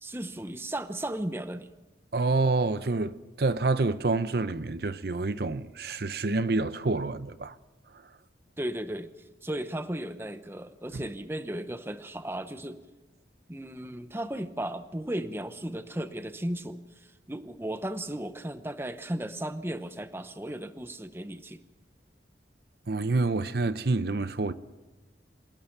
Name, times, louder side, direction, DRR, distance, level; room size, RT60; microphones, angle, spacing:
voice 1, 0.0-1.7 8.6-9.1 9.4-12.8 13.5-21.6, right 1 dB, 15° right, 0.8 m, -35 dB
voice 2, 2.1-7.6 10.9-11.0 22.9-24.5, right 3 dB, 60° right, 0.6 m, -27 dB
27.5 x 17.0 x 5.9 m
head